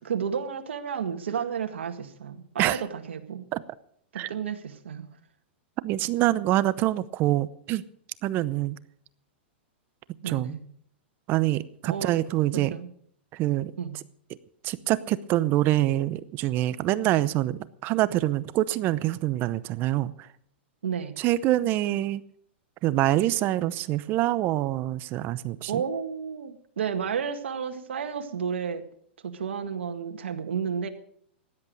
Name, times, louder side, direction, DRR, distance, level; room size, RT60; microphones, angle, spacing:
voice 1, 0.0-3.5 4.1-5.0 10.2-10.6 11.9-12.1 12.5-12.9 13.8-14.0 20.8-21.2 25.7-28.8 29.2-30.9, right 7 dB, 80° right, 1.9 m, -32 dB
voice 2, 5.8-7.8 8.2-8.8 10.3-10.6 11.3-12.7 13.3-13.7 14.6-20.1 21.2-22.2 22.8-25.8, right 15 dB, 35° right, 0.8 m, -25 dB
16.5 x 11.0 x 6.5 m
hypercardioid pair, 135°, 6 cm